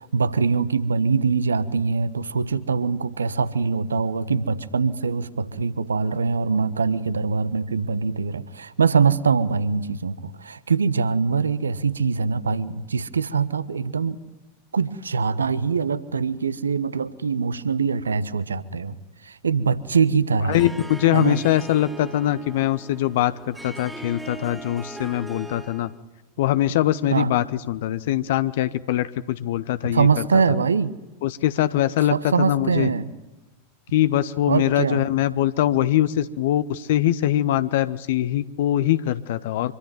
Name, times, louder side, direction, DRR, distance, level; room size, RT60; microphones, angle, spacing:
voice 1, 0.0-14.2 14.7-19.0 19.2-20.6 21.1-21.4 27.1-27.3 29.8-30.9 32.1-33.1 34.5-35.0, right 5 dB, 75° right, 16 dB, 1.3 m, -23 dB
voice 2, 20.5-25.9 26.4-30.4 31.2-32.9 33.9-39.7, left 13 dB, 55° left, 14 dB, 1.0 m, -22 dB
Harp, 20.5-26.0, right 2 dB, 5° right, 2.3 m, -39 dB
25.5 x 24.5 x 9.2 m, 1.0 s
figure-of-eight pair, 90°, 0 cm